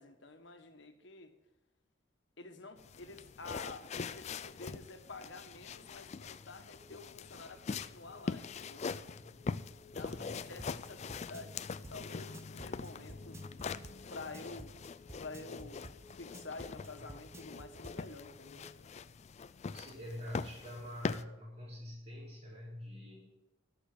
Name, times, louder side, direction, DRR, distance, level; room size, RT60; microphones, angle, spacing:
voice 1, 0.0-1.3 2.4-8.9 9.9-13.4 14.1-14.8 15.1-15.8 16.1-18.7, left 3 dB, 60° left, 6 dB, 1.3 m, -49 dB
sound 1, 2.8-21.2, left 5 dB, 35° left, 0.3 m, -43 dB
sound 2, 6.7-18.7, equal, 15° left, 1.2 m, -60 dB
voice 2, 9.7-10.7 19.7-23.4, left 1 dB, 30° right, -4 dB, 4.5 m, -46 dB
sound 3, 10.1-18.0, right 1 dB, 15° right, 0.7 m, -51 dB
11.5 x 6.7 x 7.6 m, 0.92 s
head